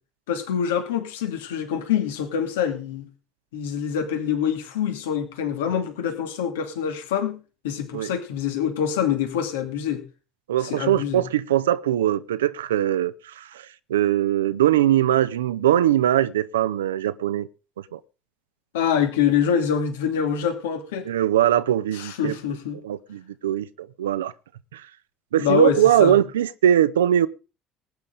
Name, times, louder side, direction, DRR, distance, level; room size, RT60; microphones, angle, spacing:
voice 1, 0.3-3.1 3.5-7.4 7.6-10.0 10.6-11.2 18.7-21.1 21.9-22.8 25.4-26.2, left 8 dB, 80° left, 2.6 m, -25 dB
voice 2, 10.5-13.6 13.9-17.5 17.9-18.0 21.0-22.4 22.8-24.3 24.7-24.8 25.3-27.3, right 11 dB, 80° right, 0.7 m, -21 dB
19.5 x 9.9 x 3.9 m
hypercardioid pair, 55°, 0 cm